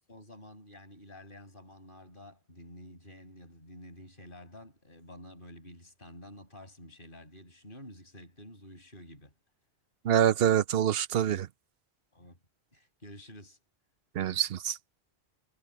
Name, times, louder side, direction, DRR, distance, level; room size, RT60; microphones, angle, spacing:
voice 1, 0.1-9.3 12.1-12.4 12.7-13.6, left 1 dB, 50° left, 8.2 m, -50 dB
voice 2, 10.0-11.5 14.1-14.8, right 10 dB, 65° right, 0.9 m, -25 dB
omnidirectional pair, 1.1 m